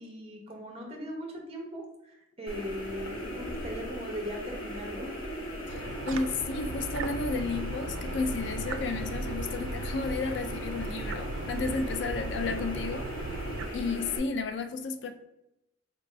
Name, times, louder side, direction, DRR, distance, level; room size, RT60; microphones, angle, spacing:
voice 1, 0.0-5.3, equal, 30° right, 1 dB, 0.8 m, -39 dB
sound 1, 2.5-14.2, equal, 90° left, 0.9 m, -39 dB
sound 2, 5.7-13.7, right 3 dB, 90° right, 0.3 m, -37 dB
voice 2, 6.1-13.1 13.7-15.1, left 4 dB, 65° left, 8 dB, 0.4 m, -32 dB
4.4 x 2.6 x 3.2 m, 0.87 s
head